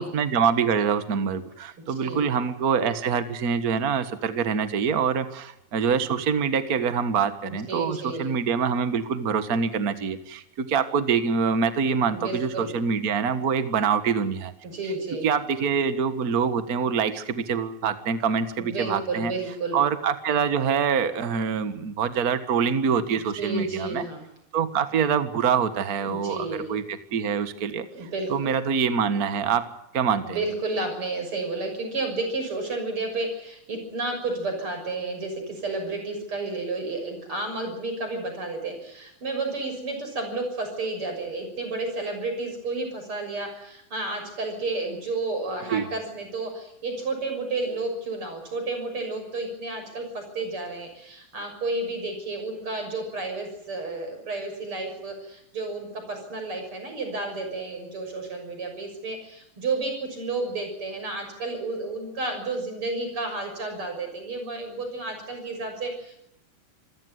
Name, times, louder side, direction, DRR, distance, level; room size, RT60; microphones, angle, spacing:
voice 1, 0.0-14.5 15.2-19.3 19.7-24.1 24.5-29.7 29.9-30.4 45.7-45.9, right 6 dB, 85° right, 11 dB, 0.8 m, -25 dB
voice 2, 7.4-8.2 12.0-12.7 14.6-15.3 18.6-19.8 23.4-24.2 26.0-26.7 27.9-28.5 30.2-66.2, right 3 dB, 35° right, 5 dB, 7.2 m, -31 dB
26.5 x 16.0 x 9.3 m, 0.79 s
omnidirectional pair, 4.2 m